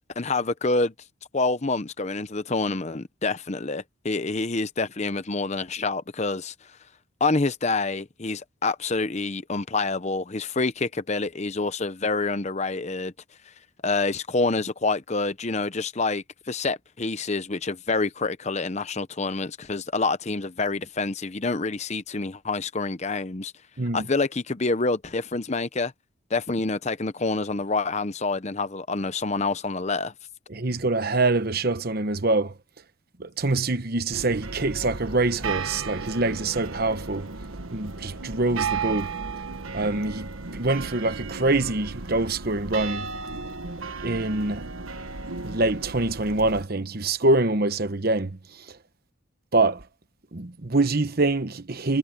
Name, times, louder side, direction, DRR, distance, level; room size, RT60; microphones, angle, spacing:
voice 1, 0.2-0.9 1.3-6.5 7.2-13.1 13.8-23.5 23.9-25.9 26.3-30.1, left 3 dB, 30° left, 0.8 m, -27 dB
voice 2, 30.5-32.5 33.2-37.3 37.7-39.1 39.7-40.3 40.5-43.1 44.0-44.7 45.4-48.8 49.5-49.8 50.3-52.0, right 2 dB, 45° right, 1.0 m, -25 dB
sound 1, 34.1-46.6, right 4 dB, 80° right, 1.4 m, -34 dB
head